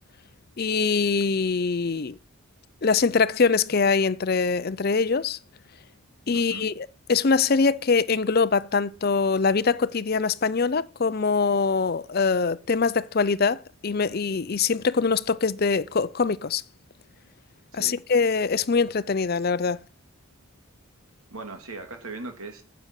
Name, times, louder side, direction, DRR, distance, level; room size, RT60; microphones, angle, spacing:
voice 1, 0.6-2.2 2.8-5.4 6.3-16.6 17.7-19.8, left 4 dB, 45° left, 0.5 m, -23 dB
voice 2, 6.3-6.7 17.7-18.0 21.3-22.6, right 3 dB, 80° right, 3.0 m, -39 dB
10.0 x 7.8 x 7.5 m
head